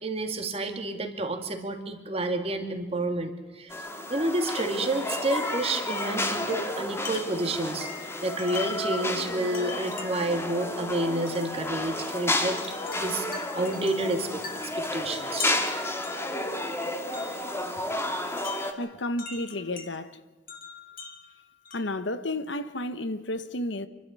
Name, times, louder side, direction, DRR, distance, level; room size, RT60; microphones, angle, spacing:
voice 1, 0.0-3.8 4.1-7.9 8.2-12.6 12.9-13.3 13.5-14.4 14.8-15.6, right 2 dB, 30° right, 2.2 m, -29 dB
sound 1, 3.7-18.7, left 1 dB, 15° left, 1.7 m, -32 dB
Wind chime, 4.4-4.8 5.4-8.9 9.5-10.4 11.3-11.5 12.6-17.5 18.4-19.9 20.5-22.0, left 5 dB, 45° left, 2.8 m, -42 dB
voice 2, 18.8-20.2 21.7-23.9, left 1 dB, 70° left, 1.2 m, -32 dB
27.5 x 12.5 x 8.5 m
head